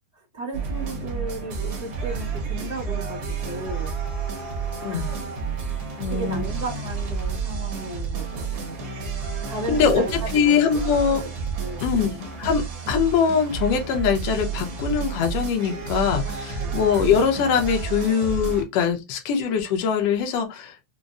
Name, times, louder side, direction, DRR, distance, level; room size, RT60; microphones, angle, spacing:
voice 1, 0.1-3.9 4.9-5.1 5.9-8.8 9.5-10.3 11.0-11.3 11.6-12.2 16.5-16.8, right 2 dB, 15° left, 0.5 m, -35 dB
sound 1, 0.5-18.6, right 5 dB, 75° right, 1.1 m, -30 dB
voice 2, 4.8-5.1 6.0-6.4 9.7-11.2 11.8-12.1 12.4-20.8, left 7 dB, 70° left, 1.6 m, -22 dB
5.3 x 2.0 x 2.3 m
omnidirectional pair, 3.5 m